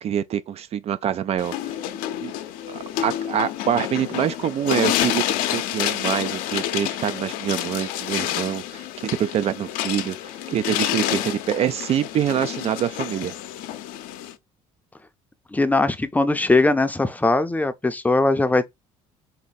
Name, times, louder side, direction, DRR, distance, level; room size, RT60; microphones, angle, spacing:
voice 1, 0.0-1.5 2.2-2.3 2.7-5.2 5.5-8.8 9.2-10.2 10.5-13.3, right 10 dB, 50° right, 0.4 m, -25 dB
sound 1, 1.4-14.3, left 12 dB, 85° left, 0.6 m, -28 dB
voice 2, 15.5-18.7, left 2 dB, 10° left, 0.5 m, -20 dB
4.2 x 2.6 x 4.0 m
cardioid pair, 110°, 14 cm